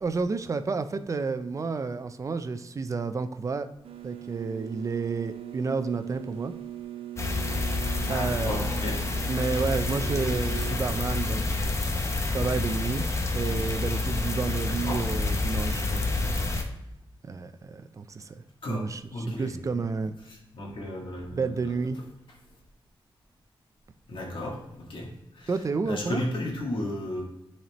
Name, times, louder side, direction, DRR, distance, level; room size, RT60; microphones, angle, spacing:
voice 1, 0.0-3.7 4.0-6.5 8.1-8.7 9.3-11.4 12.2-16.0 17.2-18.4 18.7-20.1 21.3-22.0 25.5-26.2, right 4 dB, 35° right, 10 dB, 0.4 m, -30 dB
sound 1, 3.8-10.8, right 13 dB, 90° right, 0.6 m, -40 dB
sound 2, 7.2-16.6, left 3 dB, 30° left, 0.8 m, -28 dB
voice 2, 8.0-9.0 14.6-15.0 18.6-18.8 19.1-19.8 20.5-21.5 24.1-24.6 24.9-25.1 25.3-25.5 25.9-27.2, left 1 dB, 65° left, -3 dB, 1.7 m, -33 dB
10.5 x 4.3 x 3.0 m, 0.91 s
wide cardioid pair, 150°, 9 cm